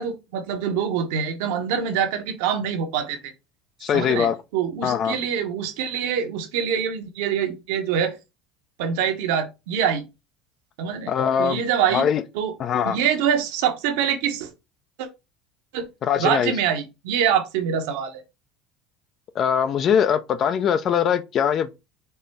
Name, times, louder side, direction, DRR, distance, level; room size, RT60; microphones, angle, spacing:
voice 1, 0.0-3.3 3.9-8.2 8.8-10.1 10.8-11.1 11.4-12.1 12.3-12.5 12.8-14.5 15.0-15.1 15.7-15.9 16.2-18.2, right 8 dB, 75° right, 0.8 m, -25 dB
voice 2, 3.8-4.4 4.8-5.2 11.1-11.6 11.9-12.2 12.6-13.0 16.0-16.5 19.4-21.7, left 8 dB, 50° left, 0.4 m, -21 dB
4.3 x 2.0 x 3.3 m
hypercardioid pair, 85°, 0 cm